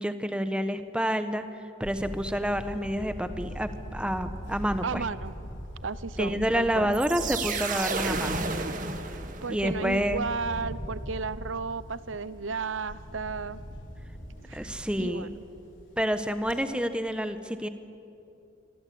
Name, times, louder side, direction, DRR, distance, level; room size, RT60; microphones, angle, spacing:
voice 1, 0.0-1.4 1.8-5.0 6.2-8.5 9.5-10.3 14.5-15.3 16.0-17.7, equal, 5° right, 9 dB, 1.1 m, -28 dB
Camera, 1.8-16.6, equal, 80° left, 4.7 m, -41 dB
voice 2, 4.8-5.3 5.8-6.9 9.4-13.6 14.5-14.7 15.0-15.3, right 4 dB, 90° right, 16 dB, 0.8 m, -33 dB
sound 1, 6.9-9.7, right 4 dB, 45° right, 1.9 m, -32 dB
25.0 x 25.0 x 8.6 m, 2.7 s
head